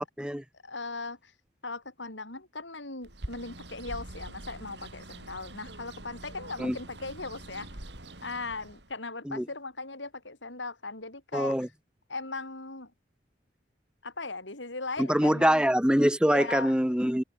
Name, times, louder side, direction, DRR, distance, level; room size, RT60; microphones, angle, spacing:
voice 1, 0.6-1.3 1.6-7.7 8.2-11.6 12.1-12.9 14.0-15.6 16.3-16.7, left 3 dB, 85° left, 7.0 m, -38 dB
Bird, 3.0-8.9, right 1 dB, 70° right, 4.2 m, -44 dB
voice 2, 11.3-11.7 15.0-17.2, equal, 5° right, 1.3 m, -24 dB
head